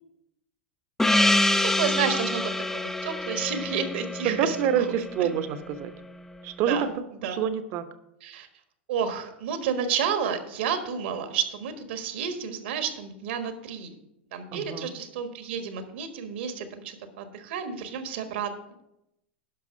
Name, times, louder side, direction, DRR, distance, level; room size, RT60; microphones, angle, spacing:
Gong, 1.0-5.8, left 1 dB, 5° left, 0.4 m, -26 dB
voice 1, 1.6-4.9 5.2-5.3 6.7-6.9 7.2-7.4 8.2-8.5 8.9-13.9 14.3-18.7, right 7 dB, 70° right, 8 dB, 1.4 m, -31 dB
voice 2, 4.2-5.9 6.4-6.9 7.2-7.8 14.5-14.9, right 8 dB, 50° right, 11 dB, 0.9 m, -27 dB
11.0 x 5.8 x 5.1 m, 0.85 s
hypercardioid pair, 100°, 6 cm